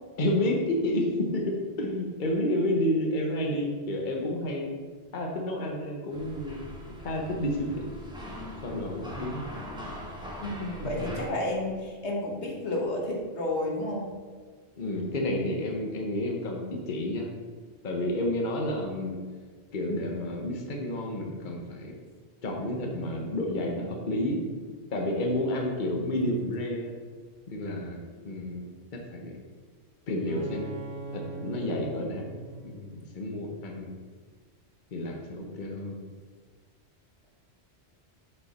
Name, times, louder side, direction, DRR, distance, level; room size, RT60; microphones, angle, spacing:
voice 1, 0.2-4.7 5.1-6.6 7.0-7.9 8.6-9.4 10.8-11.2 14.8-17.3 17.8-19.2 19.7-21.9 22.4-24.5 24.9-26.9 27.5-28.0 28.2-28.7 28.9-29.4 30.1-30.7 31.1-33.9 34.9-36.0, left 1 dB, 50° left, 1 dB, 1.1 m, -30 dB
sound 1, 6.1-11.3, equal, 5° right, 1.5 m, -41 dB
voice 2, 10.4-14.1, left 1 dB, 80° left, -1 dB, 1.7 m, -31 dB
Bowed string instrument, 30.2-33.9, right 3 dB, 55° right, 1.6 m, -42 dB
7.9 x 5.7 x 4.2 m, 1.5 s
omnidirectional pair, 1.1 m